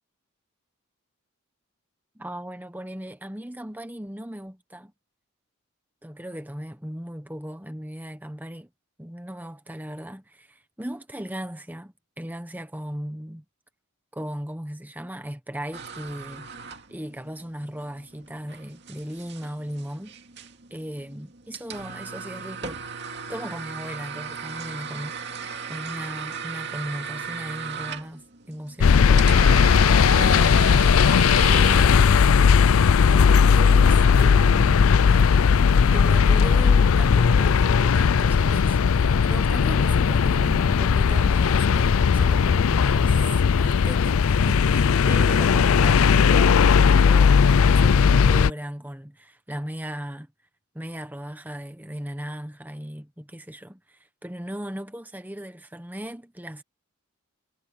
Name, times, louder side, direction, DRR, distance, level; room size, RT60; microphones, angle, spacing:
voice 1, 2.1-4.9 6.0-8.7 9.0-13.4 14.1-16.5 16.9-20.2 20.7-22.8 23.3-25.4 25.7-29.8 30.1-31.1 31.4-32.2 33.1-35.3 35.9-43.3 43.6-50.3 50.7-56.6, equal, 10° right, 1.1 m, -37 dB
sound 1, 15.7-31.8, right 6 dB, 50° right, 2.4 m, -36 dB
sound 2, 28.8-48.5, left 6 dB, 75° left, 0.4 m, -17 dB
head